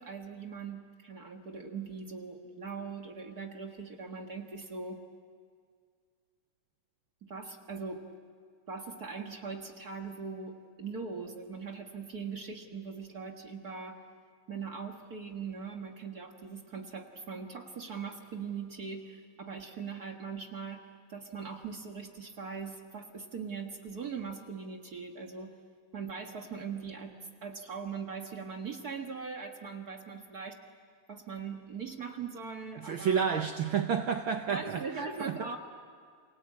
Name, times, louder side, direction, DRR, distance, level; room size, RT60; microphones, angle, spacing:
voice 1, 0.0-5.0 7.2-8.0 8.7-14.0 14.5-25.5 25.9-30.6 31.1-33.3 34.5-35.6, right 5 dB, 40° right, 1.7 m, -41 dB
voice 2, 32.9-34.8 35.4-35.5, right 7 dB, 65° right, 1.3 m, -29 dB
29.0 x 23.5 x 8.5 m
omnidirectional pair, 3.3 m